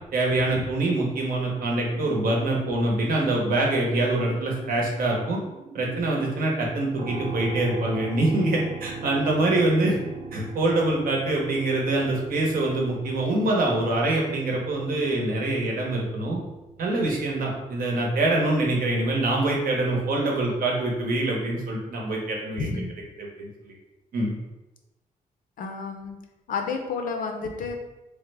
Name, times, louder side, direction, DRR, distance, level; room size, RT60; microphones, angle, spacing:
voice 1, 0.1-5.4 5.7-10.0 10.3-16.4 16.8-22.7 23.2-23.7 24.1-24.3, right 2 dB, 75° right, -1 dB, 0.8 m, -25 dB
sound 1, 1.4-10.6, right 5 dB, 5° right, 0.6 m, -45 dB
sound 2, 7.0-21.0, right 4 dB, 40° right, 0.4 m, -41 dB
voice 2, 22.6-22.9 25.6-26.2 26.5-27.8, left 4 dB, 70° left, 4 dB, 0.5 m, -30 dB
3.3 x 2.1 x 3.3 m, 1.0 s
wide cardioid pair, 160°, 15 cm